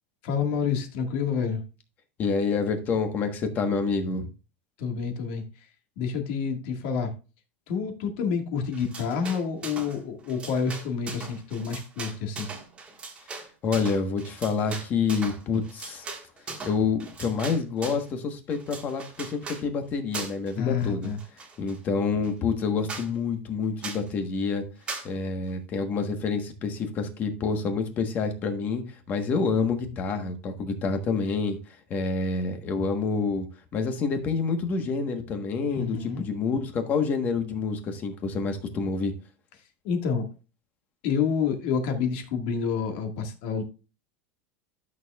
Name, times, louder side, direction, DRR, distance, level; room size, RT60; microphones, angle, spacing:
voice 1, 0.2-1.6 4.8-5.4 6.0-7.1 7.7-12.5 20.6-21.2 35.7-36.2 39.8-40.3 41.0-43.6, left 6 dB, 55° left, 1.9 m, -28 dB
voice 2, 2.2-4.3 13.6-16.1 16.6-21.1 21.6-24.6 25.0-31.6 31.9-33.5 33.7-39.1, left 4 dB, 30° left, 1.3 m, -28 dB
sound 1, 8.7-10.0 10.2-18.1 18.5-19.6 20.1-20.5 20.8-21.8 22.2-22.3 22.6-22.7 22.9-23.1 23.8-24.1 24.9-25.1, right 4 dB, 20° right, 1.6 m, -39 dB
12.0 x 6.6 x 2.4 m
supercardioid pair, 165°, 6 cm